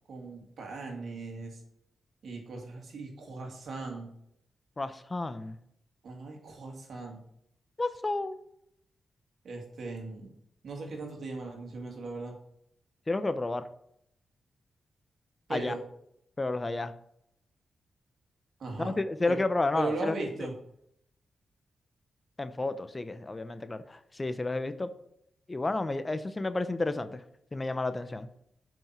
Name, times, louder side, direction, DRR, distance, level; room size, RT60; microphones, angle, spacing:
voice 1, 0.1-1.6 2.2-4.1 6.0-7.2 9.4-10.3 10.6-12.4 15.5-15.8 18.6-19.0 19.3-19.4 19.7-20.5, right 3 dB, 70° right, 1 dB, 2.4 m, -38 dB
voice 2, 4.8-5.6 7.8-8.4 13.1-13.7 15.5-15.7 16.4-16.9 18.8-20.1 22.4-24.9 25.5-27.2 27.5-28.3, left 2 dB, 35° left, 12 dB, 0.8 m, -31 dB
7.2 x 6.1 x 5.9 m, 0.74 s
supercardioid pair, 40°, 0 cm